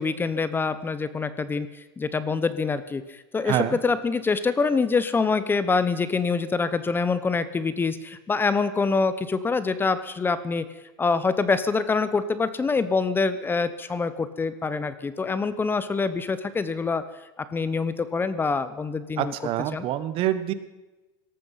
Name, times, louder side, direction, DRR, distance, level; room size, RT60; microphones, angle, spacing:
voice 1, 0.0-1.7 2.0-10.6 11.0-17.0 17.5-19.3 19.7-19.8, left 4 dB, 15° left, 14 dB, 1.0 m, -25 dB
voice 2, 3.5-3.8 19.2-20.5, right 12 dB, 45° right, 13 dB, 1.5 m, -26 dB
18.0 x 13.5 x 5.8 m, 1.1 s
supercardioid pair, 125°, 12 cm